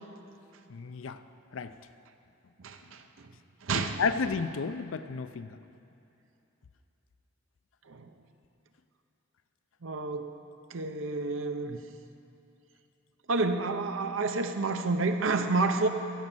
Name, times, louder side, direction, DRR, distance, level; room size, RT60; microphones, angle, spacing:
voice 1, 0.7-1.2 1.5-1.7 3.7-5.5, left 5 dB, 70° left, 11 dB, 0.5 m, -32 dB
voice 2, 2.6-3.3 3.6-4.0 7.9-8.1 9.8-10.4 10.7-11.8 13.3-15.9, right 3 dB, 70° right, 7 dB, 0.7 m, -29 dB
15.5 x 5.3 x 7.3 m, 2.8 s
head